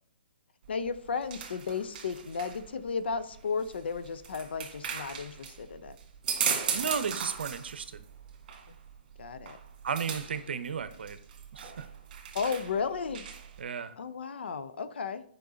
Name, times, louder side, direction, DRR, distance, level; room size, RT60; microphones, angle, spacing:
sound 1, 0.6-13.6, right 7 dB, 50° right, 1.8 m, -38 dB
voice 1, 0.7-6.0 9.2-9.6 12.3-13.3 14.0-15.2, left 5 dB, 75° left, 12 dB, 0.7 m, -34 dB
voice 2, 6.7-8.0 9.8-11.2 11.5-11.9 13.6-13.9, right 6 dB, 70° right, 12 dB, 0.7 m, -34 dB
8.6 x 5.3 x 3.9 m, 0.62 s
hypercardioid pair, 145°, 6 cm